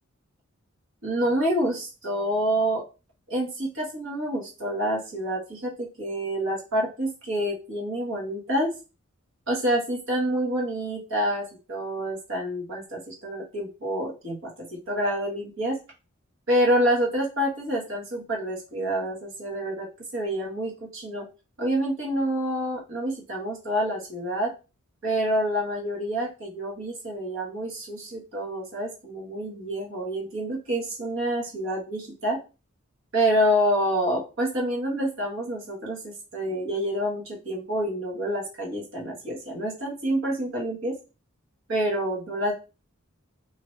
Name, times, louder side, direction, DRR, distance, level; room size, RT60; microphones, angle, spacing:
voice 1, 1.0-2.8 3.3-8.7 9.5-15.8 16.5-21.3 21.6-24.5 25.0-32.4 33.1-41.0 41.7-42.5, equal, 60° right, -2 dB, 1.3 m, -27 dB
2.8 x 2.6 x 3.1 m, 0.31 s
head